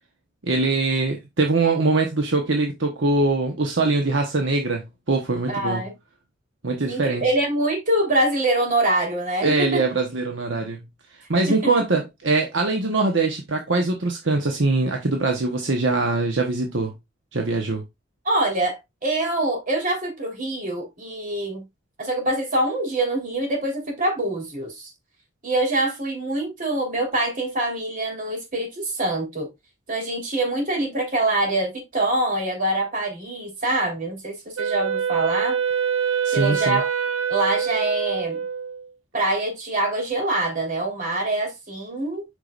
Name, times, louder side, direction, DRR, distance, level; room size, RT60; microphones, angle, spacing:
voice 1, 0.4-5.8 6.6-7.3 9.4-10.8 11.3-16.9 17.3-17.8 36.2-36.8, right 3 dB, 65° right, 1.1 m, -22 dB
voice 2, 5.5-5.9 6.9-9.8 11.5-11.7 18.2-21.6 22.0-24.9 25.4-29.5 29.9-35.6 36.3-36.8 37.3-38.4 39.1-42.2, right 1 dB, 45° right, 3.7 m, -24 dB
Wind instrument woodwind instrument, 34.6-38.9, right 7 dB, 90° right, 0.7 m, -25 dB
8.2 x 5.8 x 2.5 m
head